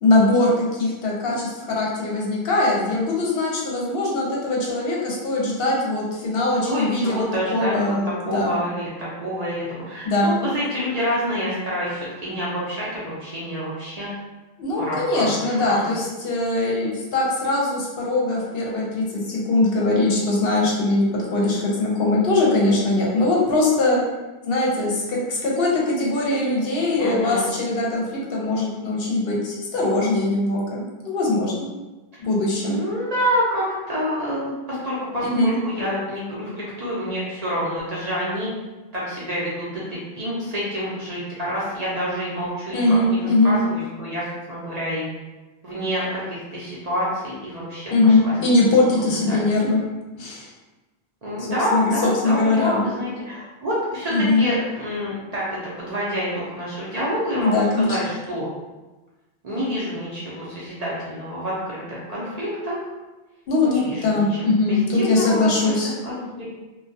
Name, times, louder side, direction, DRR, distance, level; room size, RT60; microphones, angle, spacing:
voice 1, 0.0-7.3 7.5-8.6 10.0-10.3 14.6-24.0 24.4-31.7 32.2-32.8 35.2-35.5 42.7-43.6 47.9-49.8 50.2-50.5 51.7-52.9 54.1-54.4 57.4-58.0 63.5-63.7 64.0-65.9, left 2 dB, 65° left, -3 dB, 0.8 m, -21 dB
voice 2, 6.6-7.9 8.3-14.1 14.8-15.9 27.0-27.4 32.7-38.5 38.9-45.1 45.6-48.3 49.3-49.4 51.2-58.5 59.4-62.8 63.6-65.7 66.0-66.5, equal, 45° right, -7 dB, 0.6 m, -27 dB
2.2 x 2.2 x 2.6 m, 1.1 s
omnidirectional pair, 1.1 m